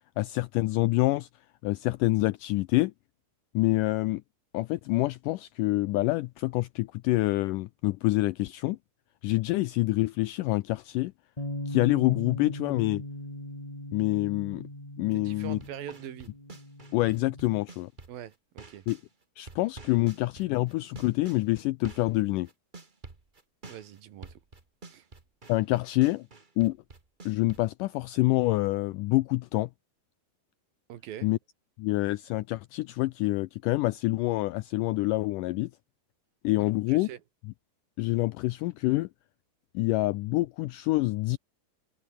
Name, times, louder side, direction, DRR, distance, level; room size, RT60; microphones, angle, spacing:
voice 1, 0.2-1.3 1.6-2.9 3.5-4.2 4.5-8.8 9.2-11.1 11.7-13.0 13.9-14.7 15.0-15.6 16.9-17.9 18.9-19.0 19.4-22.5 25.5-26.3 26.6-26.8 27.3-29.7 31.2-31.4 31.8-35.7 36.4-37.1 38.0-39.1 39.7-41.4, left 19 dB, 85° left, 1.9 m, -26 dB
Bass guitar, 11.4-17.6, left 1 dB, 10° left, 4.7 m, -39 dB
voice 2, 15.1-16.3 18.1-18.9 23.7-24.4 24.9-25.1 30.9-31.3 36.6-37.2, right 11 dB, 70° right, 3.3 m, -43 dB
sound 1, 15.4-19.1 19.5-27.7, right 3 dB, 30° right, 0.8 m, -48 dB
omnidirectional pair, 4.3 m